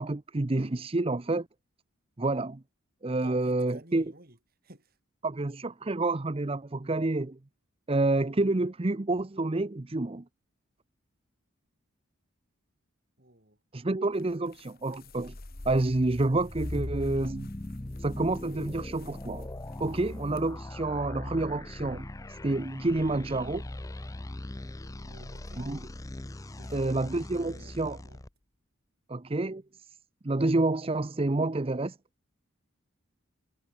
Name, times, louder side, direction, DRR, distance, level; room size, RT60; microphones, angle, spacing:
voice 1, 0.0-1.5 2.2-2.6 3.0-4.0 5.2-7.4 7.9-10.2 13.7-15.3 15.7-17.5 18.0-19.5 19.8-23.6 25.6-25.8 26.7-28.0 29.1-29.6 30.2-32.0, right 2 dB, 25° right, 0.6 m, -28 dB
voice 2, 3.2-4.4 4.6-5.0 13.2-13.6 25.0-25.7 26.6-28.2, right 1 dB, 45° right, 5.6 m, -51 dB
sound 1, 14.0-20.6, left 8 dB, 45° left, 7.1 m, -60 dB
sound 2, 15.1-28.3, left 1 dB, 15° left, 0.6 m, -40 dB
head